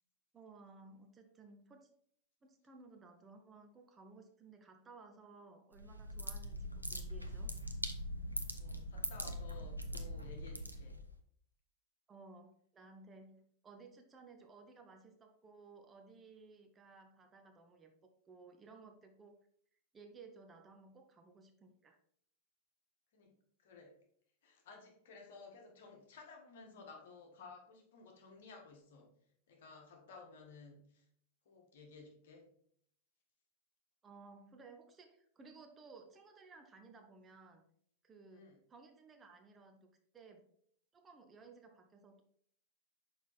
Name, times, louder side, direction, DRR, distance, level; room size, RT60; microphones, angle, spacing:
voice 1, 0.3-1.9 2.4-7.5 12.1-17.9 18.3-19.5 19.9-22.0 34.0-37.6 38.0-40.5 40.9-42.2, right 4 dB, 20° right, 4 dB, 0.8 m, -58 dB
sound 1, 5.7-11.1, equal, 90° right, 0.6 m, -42 dB
voice 2, 8.6-11.0 23.1-23.3 23.6-23.9 24.4-29.1 29.5-31.0 31.4-32.5 38.3-38.6, left 4 dB, 55° left, 2 dB, 1.5 m, -56 dB
6.1 x 4.4 x 4.1 m, 0.65 s
figure-of-eight pair, 90°, 0 cm